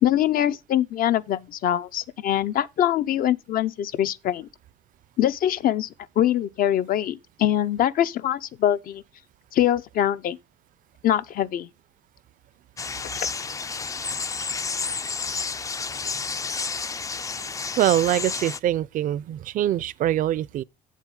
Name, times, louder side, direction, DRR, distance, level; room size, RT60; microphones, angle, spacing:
voice 1, 0.0-4.5 5.2-5.9 6.2-9.0 9.5-10.4 11.0-11.7 13.1-13.3, left 11 dB, 60° left, 0.6 m, -23 dB
sound 1, 12.8-18.6, left 4 dB, 20° left, 0.4 m, -30 dB
voice 2, 17.8-20.6, right 12 dB, 55° right, 0.4 m, -23 dB
8.3 x 7.4 x 3.7 m
cardioid pair, 110°, 17 cm